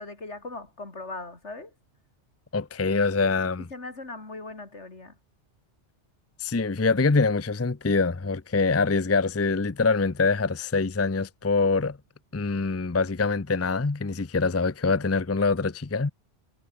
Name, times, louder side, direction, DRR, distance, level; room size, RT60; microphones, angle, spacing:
voice 1, 0.0-1.7 3.7-5.1, left 3 dB, 70° left, 3.9 m, -39 dB
voice 2, 2.5-3.7 6.4-12.0 12.3-16.1, left 4 dB, 15° left, 0.5 m, -24 dB
omnidirectional pair, 1.2 m